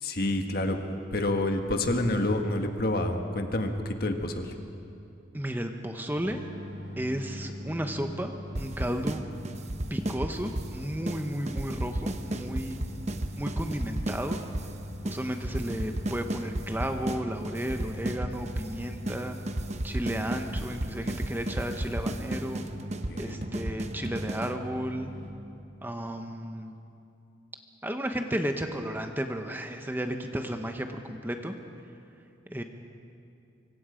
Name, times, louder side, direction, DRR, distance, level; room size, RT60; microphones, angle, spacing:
voice 1, 0.0-0.8 1.1-4.5 23.1-23.4, left 1 dB, 55° left, 4 dB, 1.7 m, -28 dB
voice 2, 5.3-6.4 7.0-9.2 9.9-12.8 13.4-14.4 15.0-19.4 19.8-22.6 23.2-25.1 25.8-26.7 27.8-31.5 32.5-32.6, equal, 10° right, 5 dB, 1.0 m, -33 dB
sound 1, 6.1-25.3, left 1 dB, 70° right, 2.8 m, -42 dB
sound 2, 8.5-9.2 9.4-10.7 11.1-11.2 11.5-14.7 15.1-15.2 15.4-17.2 17.4-18.7 19.1-19.2 19.5-24.5, right 1 dB, 35° right, 1.0 m, -33 dB
25.0 x 24.5 x 5.1 m, 2.7 s
head